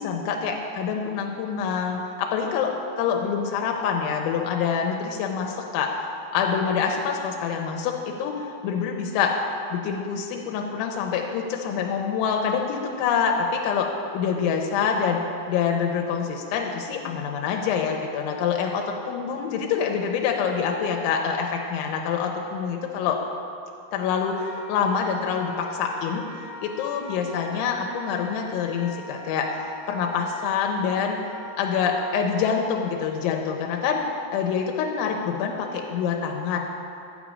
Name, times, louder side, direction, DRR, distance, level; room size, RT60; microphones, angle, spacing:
voice 1, 0.0-5.9 6.3-8.4 8.6-9.4 9.7-13.9 14.1-15.2 15.5-23.2 23.9-26.2 26.6-31.2 31.6-34.0 34.3-36.6, left 6 dB, 85° left, 2 dB, 3.1 m, -26 dB
Wind instrument woodwind instrument, 24.3-32.7, equal, 90° right, 1.9 m, -42 dB
12.0 x 5.1 x 8.5 m, 2.6 s
omnidirectional pair, 5.4 m